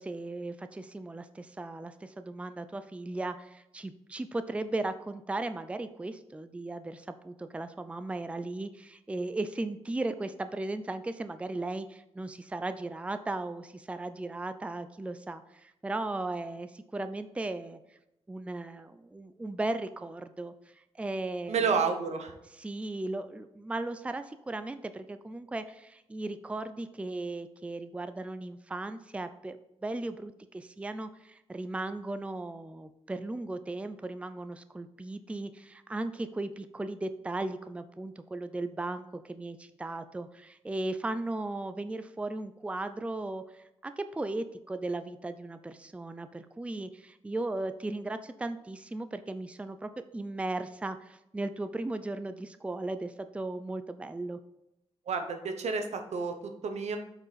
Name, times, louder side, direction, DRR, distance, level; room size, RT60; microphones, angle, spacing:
voice 1, 0.0-17.8 18.3-20.5 20.9-21.8 22.6-29.6 29.8-54.4, right 2 dB, 10° right, 10 dB, 0.4 m, -36 dB
voice 2, 21.5-22.3 55.1-57.0, right 5 dB, 85° right, 6 dB, 1.0 m, -30 dB
7.6 x 4.7 x 4.0 m, 0.86 s
wide cardioid pair, 115°, 11 cm